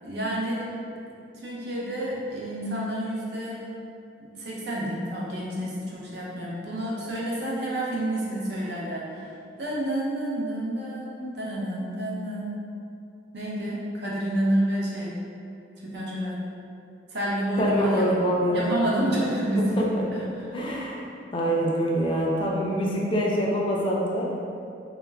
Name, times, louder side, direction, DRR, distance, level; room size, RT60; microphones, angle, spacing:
voice 1, 0.0-0.7 1.3-3.7 4.2-12.5 13.3-15.1 15.8-16.4 17.1-20.2, right 1 dB, 60° right, -5 dB, 0.6 m, -29 dB
voice 2, 17.6-18.8 19.8-20.0 20.5-21.0 21.3-24.3, equal, 30° left, -3 dB, 0.3 m, -25 dB
2.2 x 2.0 x 3.3 m, 2.5 s
head